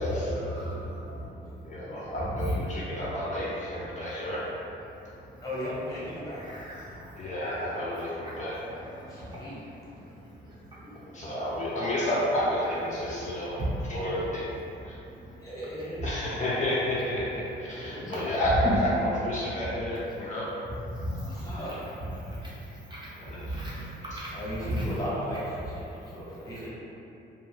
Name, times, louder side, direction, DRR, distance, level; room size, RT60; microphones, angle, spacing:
voice 1, 0.0-2.6 5.0-11.3 12.9-13.7 14.8-15.4 16.0-16.1 17.8-18.2 18.6-18.7 20.9-24.9 26.0-26.1, equal, 20° right, -8 dB, 0.7 m, -37 dB
voice 2, 1.6-4.7 7.2-8.6 11.1-13.6 13.9-14.5 14.8-15.0 16.0-20.5 23.3-23.6, left 1 dB, 40° left, -7 dB, 0.5 m, -30 dB
voice 3, 5.4-6.4 9.1-9.6 15.4-16.0 16.3-16.4 17.7-18.2 21.0-21.7 23.8-23.9 24.3-26.7, equal, 15° left, -8 dB, 0.9 m, -36 dB
2.5 x 2.1 x 3.2 m, 2.9 s
cardioid pair, 90°, 20 cm